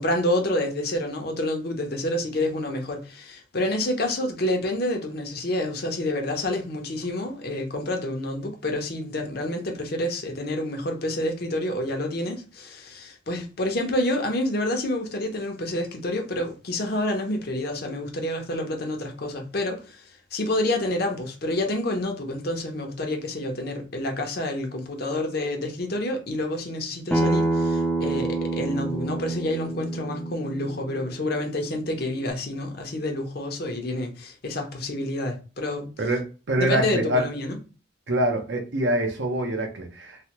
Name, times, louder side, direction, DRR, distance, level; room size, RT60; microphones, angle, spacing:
voice 1, 0.0-35.9 36.6-37.6, left 1 dB, 55° left, 0.7 m, -28 dB
Acoustic guitar, 27.1-32.3, right 2 dB, 5° left, 0.4 m, -28 dB
voice 2, 36.0-37.3 38.1-40.2, right 1 dB, 65° right, 0.7 m, -25 dB
3.2 x 2.2 x 2.9 m
head